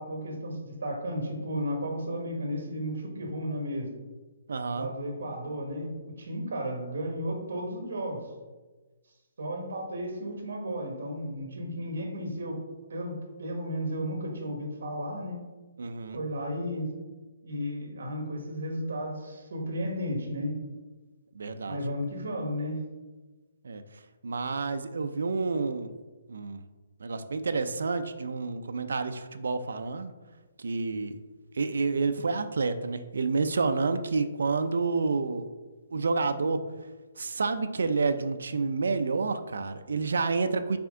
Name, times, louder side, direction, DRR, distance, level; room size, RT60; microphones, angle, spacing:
voice 1, 0.0-3.9 4.7-8.3 9.4-12.6 12.9-15.4 16.1-16.9 17.4-20.5 21.7-22.8, equal, 65° right, 2 dB, 1.5 m, -33 dB
voice 2, 4.5-4.9 15.8-16.2 21.4-21.8 23.6-23.8 24.2-25.9 26.3-26.6 27.0-30.1 30.6-31.2 31.5-35.5 35.9-36.6 37.2-40.8, right 4 dB, 80° right, 9 dB, 0.5 m, -29 dB
5.9 x 4.3 x 3.7 m, 1.3 s
hypercardioid pair, 175°, 0 cm